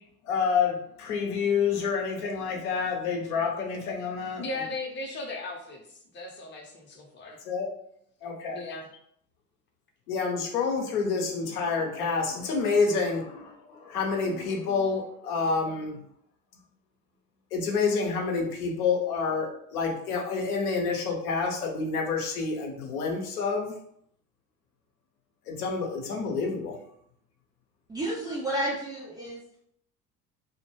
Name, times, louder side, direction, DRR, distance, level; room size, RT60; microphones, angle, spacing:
voice 1, 0.2-4.4 7.2-7.7 8.2-8.6 10.1-16.0 17.5-23.7 25.5-26.8, left 5 dB, 70° left, 1 dB, 0.7 m, -28 dB
voice 2, 4.4-5.8 6.1-7.4 8.5-8.9, left 2 dB, 25° left, 1 dB, 0.6 m, -37 dB
voice 3, 27.9-29.4, right 1 dB, 10° right, -6 dB, 0.3 m, -31 dB
2.1 x 2.0 x 3.1 m, 0.70 s
figure-of-eight pair, 60°, 47 cm